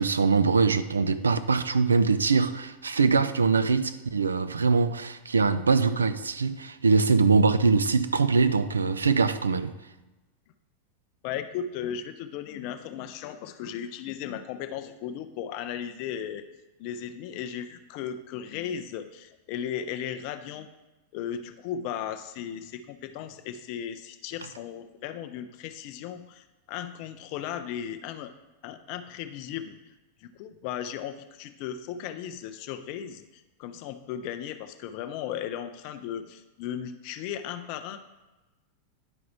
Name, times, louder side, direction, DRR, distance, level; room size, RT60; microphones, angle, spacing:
voice 1, 0.0-9.7, right 4 dB, 75° right, 0.3 m, -23 dB
voice 2, 11.2-16.4 16.8-20.7 21.1-28.3 28.6-29.9 30.2-38.0, left 9 dB, 45° left, 0.4 m, -36 dB
10.5 x 4.7 x 3.1 m
figure-of-eight pair, 90°, 0 cm